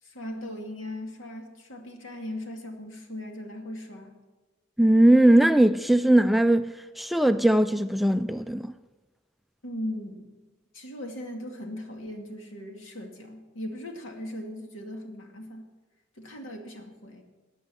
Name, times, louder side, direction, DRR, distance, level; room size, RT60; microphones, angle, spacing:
voice 1, 0.0-4.2 9.6-10.3 10.7-15.7 16.2-17.2, left 1 dB, 75° left, 2.3 m, -38 dB
voice 2, 4.8-8.7, right 1 dB, ahead, 0.3 m, -20 dB
14.5 x 9.2 x 6.3 m
head